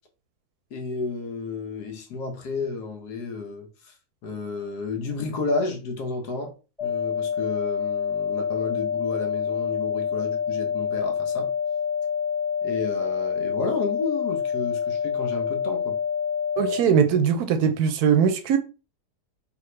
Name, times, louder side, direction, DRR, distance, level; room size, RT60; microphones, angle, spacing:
voice 1, 0.7-3.9 4.2-6.5 6.8-11.5 12.6-16.0, left 4 dB, 75° left, 1.5 m, -32 dB
sound 1, 6.8-16.8, left 7 dB, 5° left, 1.3 m, -27 dB
voice 2, 16.6-18.6, right 7 dB, 75° right, 1.0 m, -20 dB
3.5 x 3.3 x 3.1 m
omnidirectional pair, 1.8 m